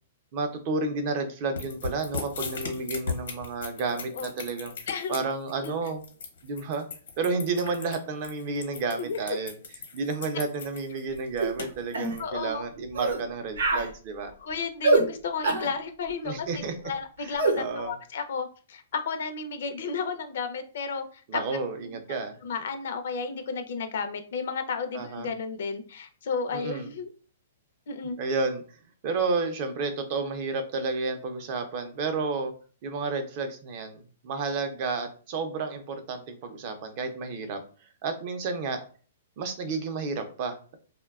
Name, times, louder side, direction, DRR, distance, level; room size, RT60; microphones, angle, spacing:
voice 1, 0.3-4.7 5.1-6.0 6.4-6.9 7.2-9.6 9.9-14.3 16.2-16.7 17.2-17.3 17.6-17.9 21.3-22.4 24.9-25.3 26.5-26.9 28.2-28.6 29.0-32.5 32.8-37.6 38.0-38.8 39.4-40.8, right 4 dB, 40° right, 7 dB, 0.4 m, -31 dB
sound 1, 1.6-12.2, left 5 dB, 85° left, 0.9 m, -37 dB
voice 2, 4.9-5.2 5.6-5.8 9.0-9.2 12.2-12.6 14.4-21.4 21.9-22.0 22.4-27.1 27.9-28.2, left 5 dB, 65° left, 7 dB, 0.5 m, -33 dB
sound 2, 11.4-11.6 11.9-12.2 12.9-13.2 13.6-13.9 14.8-15.1 15.4-15.7 17.4-17.6, right 2 dB, 90° right, 0.6 m, -23 dB
2.6 x 2.1 x 2.3 m, 0.39 s
hypercardioid pair, 160°, 0 cm